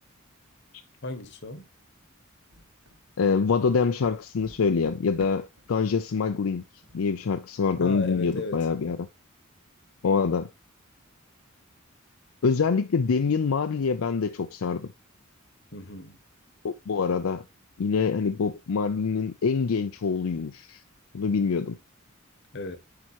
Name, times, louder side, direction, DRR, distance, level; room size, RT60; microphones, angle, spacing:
voice 1, 1.0-1.6 7.8-8.7 15.7-16.2 22.5-22.8, left 2 dB, 55° left, 1.1 m, -35 dB
sound 1, 2.5-5.7 6.2-6.6 6.8-7.1 7.6-7.7 8.3-8.9, equal, 85° right, 1.5 m, -51 dB
voice 2, 3.2-6.6 6.9-9.0 10.0-10.5 12.4-14.9 16.6-17.4 17.8-20.8 21.1-21.8, left 5 dB, 85° left, 0.5 m, -25 dB
8.1 x 4.8 x 2.9 m
head